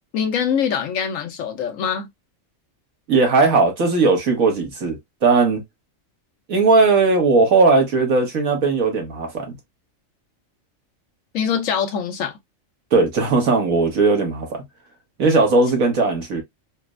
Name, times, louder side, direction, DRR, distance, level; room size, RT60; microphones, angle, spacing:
voice 1, 0.1-2.1 11.3-12.4, left 7 dB, 75° left, 1.1 m, -23 dB
voice 2, 3.1-5.6 6.5-9.5 12.9-14.6 15.2-16.4, right 3 dB, 90° right, 1.6 m, -18 dB
4.1 x 2.1 x 2.3 m
omnidirectional pair, 1.4 m